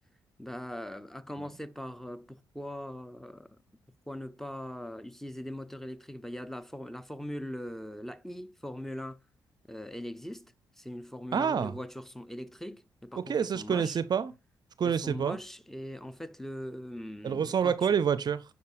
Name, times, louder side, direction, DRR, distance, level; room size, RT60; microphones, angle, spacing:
voice 1, 0.4-3.5 4.1-9.2 9.7-14.0 14.8-17.7, left 1 dB, 5° left, 0.6 m, -41 dB
voice 2, 11.3-11.7 13.2-14.3 14.8-15.4 17.2-18.4, right 7 dB, 50° right, 0.5 m, -27 dB
9.4 x 4.2 x 2.5 m
hypercardioid pair, 45°, 9 cm